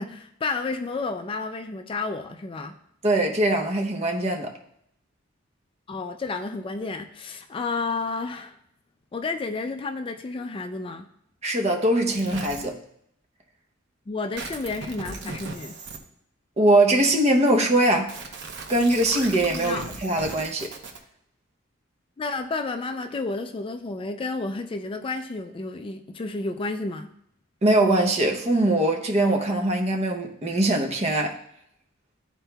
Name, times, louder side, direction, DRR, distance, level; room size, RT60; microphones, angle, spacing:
voice 1, 0.0-2.8 5.9-8.6 9.1-11.1 14.1-15.8 19.5-19.9 22.2-27.1, left 3 dB, 25° left, 0.3 m, -31 dB
voice 2, 3.0-4.5 11.4-12.8 16.6-18.1 18.7-20.7 27.6-31.3, right 1 dB, 35° right, 0.8 m, -22 dB
sound 1, 12.1-12.6 14.4-16.0 18.1-21.0, right 3 dB, 60° right, 0.8 m, -37 dB
12.5 x 4.4 x 2.3 m
head